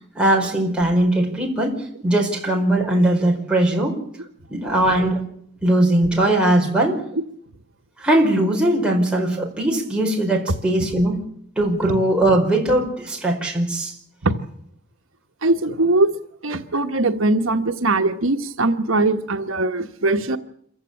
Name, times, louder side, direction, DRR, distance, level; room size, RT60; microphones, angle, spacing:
voice 1, 0.1-4.0 4.5-5.2 5.6-7.0 8.0-11.2 11.6-13.9, right 1 dB, 5° right, -2 dB, 4.8 m, -20 dB
voice 2, 15.4-16.1 16.4-20.4, right 2 dB, 80° right, 6 dB, 1.3 m, -20 dB
27.0 x 15.0 x 8.7 m, 0.69 s
head